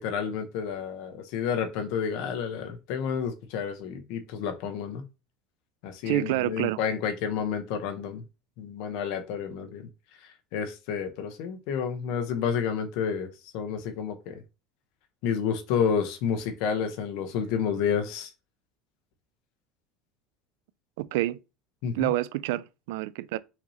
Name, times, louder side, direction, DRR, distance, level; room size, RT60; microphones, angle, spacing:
voice 1, 0.0-5.0 5.8-8.2 8.6-9.9 10.2-14.4 15.2-18.3 21.8-22.1, left 7 dB, 60° left, 0.8 m, -30 dB
voice 2, 6.0-6.8 21.0-21.4 21.9-23.4, right 16 dB, 80° right, 0.3 m, -28 dB
5.8 x 2.8 x 3.1 m
cardioid pair, 170°, 0 cm